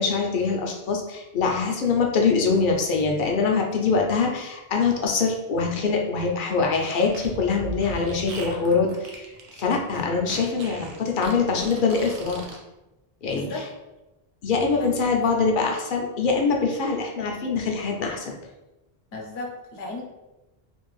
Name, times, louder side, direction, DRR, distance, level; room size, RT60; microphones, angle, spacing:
voice 1, 0.0-9.3 9.6-12.4 13.2-13.7 14.4-18.3, left 4 dB, 60° left, 1 dB, 0.6 m, -24 dB
Fart, 7.0-12.6, right 3 dB, 70° right, 0.8 m, -38 dB
voice 2, 13.3-13.7 14.7-14.9 19.1-20.0, left 2 dB, 80° left, -1 dB, 1.0 m, -35 dB
2.6 x 2.4 x 3.0 m, 1.0 s
omnidirectional pair, 1.1 m